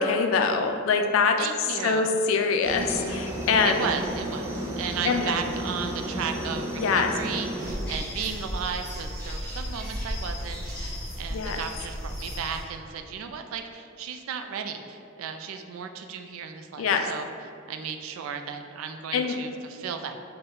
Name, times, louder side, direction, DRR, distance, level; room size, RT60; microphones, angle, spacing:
voice 1, 0.0-1.4 1.8-3.9 5.0-5.3 6.7-7.1 11.3-11.6 16.8-17.0 19.1-19.4, left 5 dB, 75° left, 5 dB, 0.3 m, -24 dB
voice 2, 1.4-2.1 3.6-17.3 17.7-20.2, right 6 dB, 85° right, 7 dB, 0.3 m, -35 dB
Aircraft, 2.6-7.8, right 1 dB, 15° right, 0.4 m, -32 dB
sound 1, 7.6-12.6, equal, 5° left, 1.4 m, -34 dB
4.2 x 2.1 x 3.7 m, 2.5 s
head